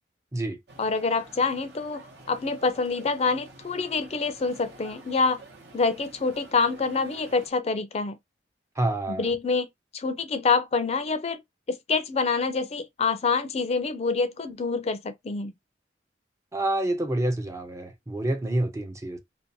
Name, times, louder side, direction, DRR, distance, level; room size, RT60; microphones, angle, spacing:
sound 1, 0.7-7.5, right 2 dB, 70° right, 0.8 m, -49 dB
voice 1, 0.8-5.4 5.7-8.1 9.2-9.7 9.9-11.4 11.7-15.5, left 4 dB, 35° left, 0.4 m, -26 dB
voice 2, 8.8-9.3 16.5-19.2, right 1 dB, 15° right, 0.5 m, -28 dB
2.6 x 2.2 x 2.6 m
head